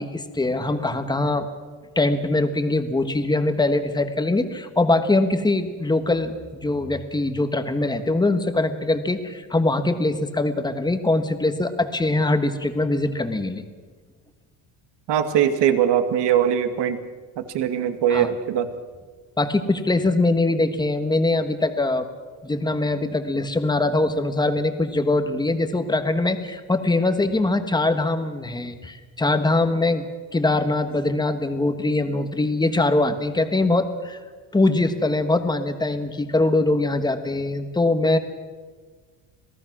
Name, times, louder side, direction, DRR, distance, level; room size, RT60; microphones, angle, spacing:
voice 1, 0.0-1.5 1.9-13.6 18.1-18.3 19.4-22.1 22.4-30.1 30.3-34.2 34.5-38.2, left 2 dB, 10° left, 8 dB, 1.4 m, -22 dB
voice 2, 15.1-17.0 17.5-18.7, right 9 dB, 55° right, 8 dB, 2.1 m, -21 dB
26.5 x 18.0 x 6.2 m, 1.5 s
cardioid pair, 145°, 49 cm